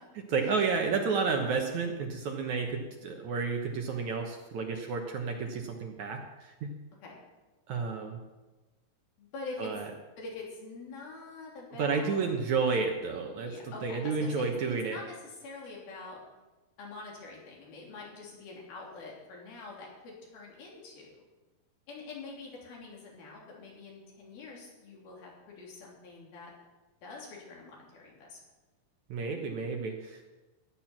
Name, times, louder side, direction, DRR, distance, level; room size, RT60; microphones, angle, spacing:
voice 1, 0.3-6.7 7.7-8.2 9.6-9.9 11.8-13.5 13.8-15.0 29.1-30.2, right 4 dB, 65° right, 3 dB, 2.2 m, -31 dB
voice 2, 9.2-12.3 13.5-16.2 16.8-21.2 21.9-26.5 27.0-28.4, left 3 dB, 75° left, -3 dB, 5.1 m, -45 dB
15.5 x 11.0 x 6.0 m, 1.2 s
omnidirectional pair, 4.3 m